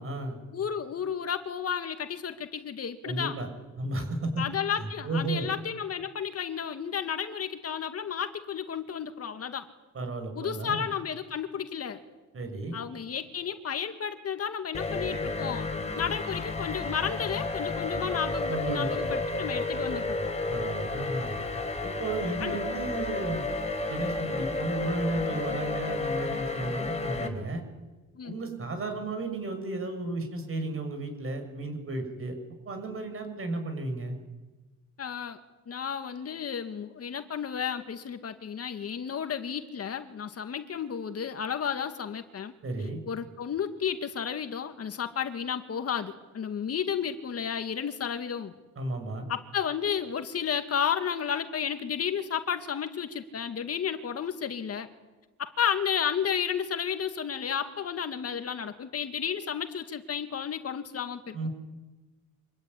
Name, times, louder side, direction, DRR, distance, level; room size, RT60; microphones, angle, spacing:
voice 1, 0.0-0.4 3.0-3.5 3.8-4.4 4.8-5.5 9.9-10.9 12.3-12.8 18.5-19.0 20.5-21.3 21.8-23.5 23.9-27.6 28.2-32.3 32.7-34.2 42.6-43.0 48.8-49.2 61.3-61.5, right 2 dB, 45° right, 7 dB, 7.2 m, -33 dB
voice 2, 0.5-3.3 4.4-9.7 10.3-12.0 12.7-20.3 22.4-22.6 28.2-28.4 35.0-35.4 35.7-42.5 43.1-48.5 49.3-54.9 55.4-61.5, left 7 dB, 50° left, 8 dB, 2.1 m, -32 dB
sound 1, 14.7-27.3, left 3 dB, 20° left, 4.4 m, -32 dB
25.5 x 20.5 x 9.8 m, 1.2 s
cardioid pair, 90°, 30 cm